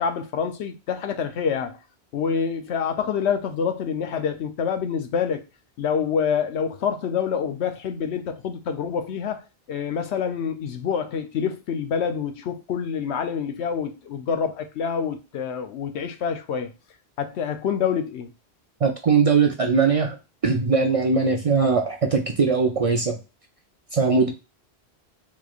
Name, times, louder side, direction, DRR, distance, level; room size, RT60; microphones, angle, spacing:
voice 1, 0.0-1.8 2.1-5.4 5.8-16.7 17.2-18.3, left 7 dB, 85° left, 0.9 m, -27 dB
voice 2, 18.8-20.2 20.4-23.2 23.9-24.3, right 5 dB, 50° right, 0.4 m, -20 dB
3.7 x 3.2 x 2.4 m
omnidirectional pair, 1.1 m